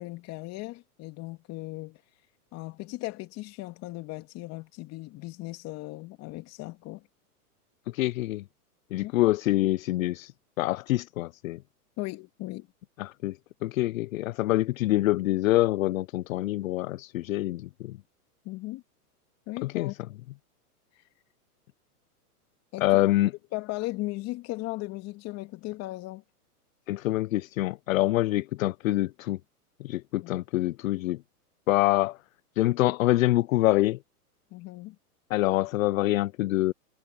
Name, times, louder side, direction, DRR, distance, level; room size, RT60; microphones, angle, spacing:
voice 1, 0.0-2.0 2.5-7.0 9.0-9.1 12.0-12.7 18.4-18.8 19.5-19.9 22.7-22.9 23.5-26.2 30.2-30.3 34.5-35.0, left 20 dB, 35° left, 2.7 m, -37 dB
voice 2, 7.9-8.4 8.9-10.3 10.6-11.6 13.0-18.0 19.6-19.9 22.8-23.3 26.9-29.4 29.8-31.2 31.7-32.2 32.6-34.0 35.3-36.7, left 17 dB, 60° left, 0.7 m, -25 dB
hypercardioid pair, 135°, 46 cm